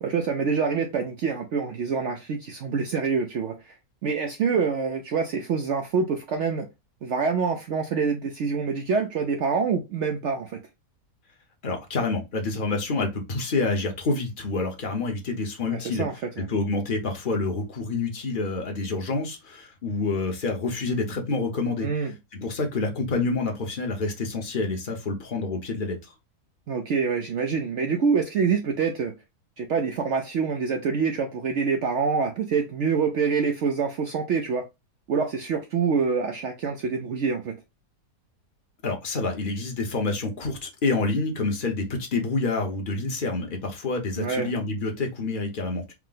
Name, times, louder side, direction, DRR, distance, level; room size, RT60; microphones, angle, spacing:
voice 1, 0.0-3.8 4.0-6.7 7.0-10.6 15.7-16.5 21.8-22.1 26.7-29.1 29.6-34.6 35.1-37.6 44.2-44.5, right 5 dB, 70° right, 0.7 m, -26 dB
voice 2, 11.6-16.1 16.4-26.0 38.8-45.9, left 3 dB, 40° left, 0.9 m, -28 dB
4.6 x 2.1 x 3.9 m
omnidirectional pair, 1.7 m